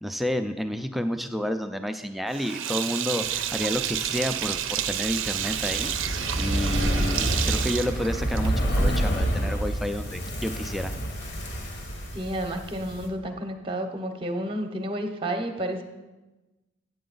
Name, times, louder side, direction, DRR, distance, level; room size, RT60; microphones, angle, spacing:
voice 1, 0.0-5.9 6.4-10.9, equal, ahead, 7 dB, 0.4 m, -30 dB
Sink (filling or washing), 2.3-8.7, right 10 dB, 75° right, 0.5 m, -30 dB
sound 1, 3.2-13.1, equal, 80° left, 1.1 m, -44 dB
Fire, 5.3-12.6 12.9-13.0, right 1 dB, 60° left, 1.2 m, -28 dB
voice 2, 12.1-15.8, right 1 dB, 25° right, 6 dB, 0.8 m, -31 dB
8.8 x 7.5 x 3.9 m, 1.1 s
head